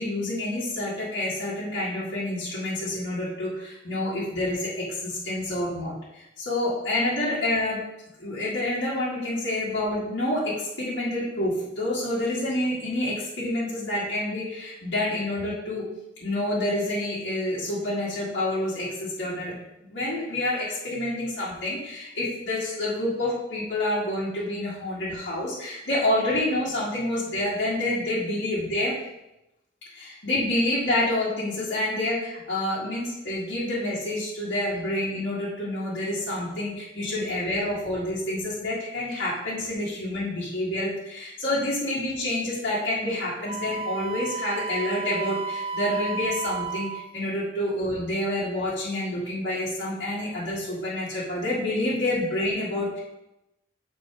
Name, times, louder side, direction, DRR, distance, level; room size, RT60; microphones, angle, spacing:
voice 1, 0.0-7.9 8.2-15.9 16.2-19.5 19.9-29.0 29.9-53.0, left 1 dB, 60° left, -9 dB, 1.9 m, -28 dB
Wind instrument woodwind instrument, 43.5-47.0, right 4 dB, 30° right, 0.3 m, -32 dB
6.4 x 4.3 x 4.8 m, 0.90 s
head